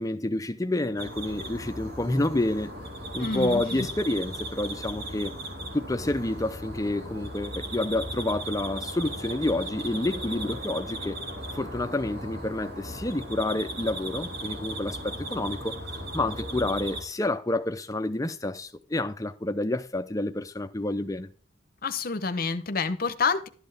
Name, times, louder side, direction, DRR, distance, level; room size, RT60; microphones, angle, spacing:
voice 1, 0.0-2.7 3.1-5.3 5.7-11.2 11.5-15.8 16.1-21.3, left 1 dB, 15° left, 0.6 m, -29 dB
sound 1, 1.0-17.0, right 1 dB, 45° right, 2.8 m, -37 dB
voice 2, 3.2-3.9 21.8-23.5, left 4 dB, 45° left, 0.9 m, -28 dB
12.0 x 7.8 x 3.4 m
head